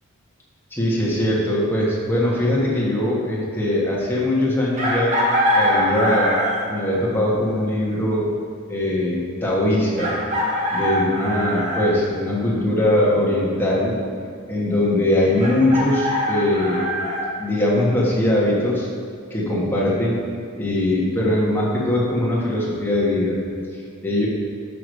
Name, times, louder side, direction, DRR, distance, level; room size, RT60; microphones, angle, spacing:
voice 1, 0.7-5.2 5.5-6.4 6.7-8.3 8.7-10.2 10.7-14.0 14.5-16.8 17.4-18.9 19.3-20.2 20.6-23.4 24.0-24.3, left 1 dB, 10° left, -5 dB, 1.4 m, -21 dB
Chicken rooster, 4.8-6.7 8.4-8.5 10.0-11.9 15.4-17.3, equal, 35° right, 1.5 m, -22 dB
6.1 x 4.7 x 6.5 m, 2.4 s
head